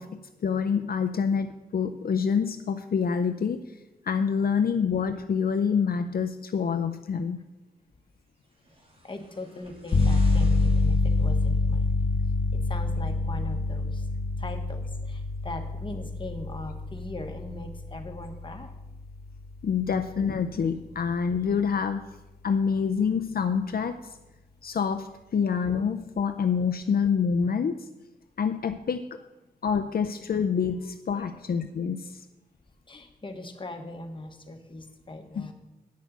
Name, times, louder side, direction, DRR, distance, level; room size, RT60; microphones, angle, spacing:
voice 1, 0.0-3.6 4.0-7.4 19.6-22.1 22.4-24.1 24.6-27.9 28.4-29.2 29.6-32.3 35.4-35.5, left 6 dB, 70° left, 8 dB, 0.5 m, -27 dB
sound 1, 8.4-11.8 12.7-12.8, right 1 dB, 35° right, 2.5 m, -50 dB
voice 2, 9.0-12.0 12.5-14.1 14.4-18.7 31.1-31.4 32.9-35.5, left 2 dB, 30° left, 4 dB, 1.2 m, -40 dB
sound 2, 9.9-20.4, left 2 dB, 85° left, 1.1 m, -27 dB
9.3 x 6.4 x 7.9 m, 1.0 s
wide cardioid pair, 130°, 16 cm